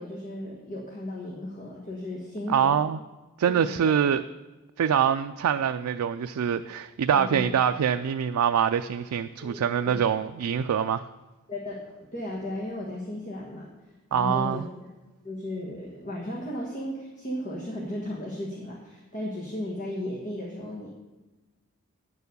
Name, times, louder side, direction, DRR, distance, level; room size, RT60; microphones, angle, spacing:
voice 1, 0.0-2.8 3.6-3.9 7.1-7.5 9.4-10.1 11.5-11.8 12.1-13.7 14.1-14.9 15.2-20.9, left 1 dB, 35° left, -2 dB, 1.4 m, -35 dB
voice 2, 2.5-3.0 3.4-4.2 4.8-11.0 14.1-14.6, right 8 dB, 85° right, 9 dB, 0.4 m, -24 dB
10.0 x 6.9 x 6.7 m, 1.2 s
head